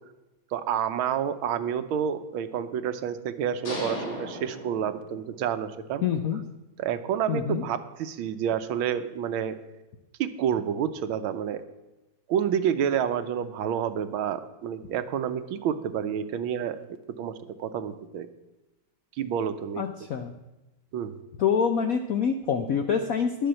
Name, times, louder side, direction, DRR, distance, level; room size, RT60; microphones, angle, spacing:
voice 1, 0.5-6.0 6.8-9.6 10.2-11.6 12.3-16.8 17.2-18.3 19.2-19.8 20.9-21.2, right 8 dB, 80° right, 11 dB, 1.5 m, -29 dB
sound 1, 3.6-5.5, left 1 dB, 45° left, 2.3 m, -36 dB
voice 2, 6.0-6.4 7.3-7.6 19.8-20.3 21.4-23.5, left 7 dB, 75° left, 7 dB, 0.8 m, -26 dB
11.0 x 7.0 x 7.6 m, 1.0 s
omnidirectional pair, 2.3 m